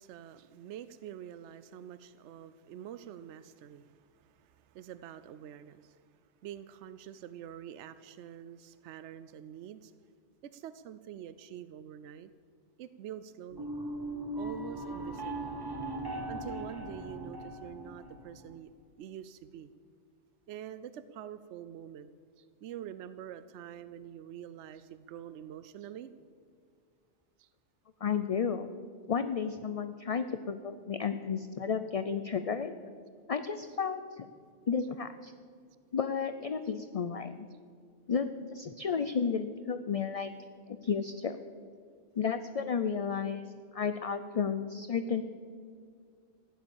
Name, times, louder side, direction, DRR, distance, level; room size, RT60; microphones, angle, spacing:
voice 1, 0.0-9.9 10.4-12.3 12.8-13.7 14.4-15.6 16.3-18.7 19.0-19.7 20.5-22.1 22.4-26.1 27.4-27.5 36.6-36.7 37.5-37.6, right 10 dB, 75° right, 13 dB, 0.9 m, -46 dB
sound 1, 13.5-18.6, right 1 dB, 20° right, 1.4 m, -39 dB
voice 2, 28.0-28.7 29.1-32.7 33.3-34.3 34.7-35.3 35.9-37.3 38.1-40.3 40.7-41.4 42.2-45.2, left 6 dB, 45° left, 10 dB, 0.5 m, -32 dB
15.5 x 10.5 x 7.1 m, 2.2 s
omnidirectional pair, 1.2 m